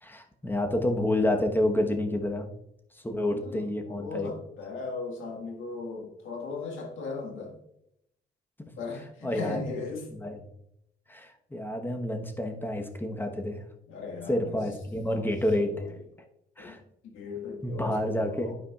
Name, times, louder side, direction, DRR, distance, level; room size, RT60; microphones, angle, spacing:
voice 1, 0.0-2.5 2.9-4.3 9.2-9.6 10.1-10.4 11.1-13.6 14.3-15.9 16.6-16.8 17.6-18.5, left 1 dB, 10° left, 4 dB, 1.1 m, -29 dB
voice 2, 3.3-7.5 8.8-10.1 13.9-14.6 15.1-15.3 15.6-15.9 16.6-16.8 17.0-18.5, left 4 dB, 80° left, 0 dB, 1.8 m, -37 dB
12.0 x 4.9 x 2.4 m, 0.79 s
cardioid pair, 90°, 20 cm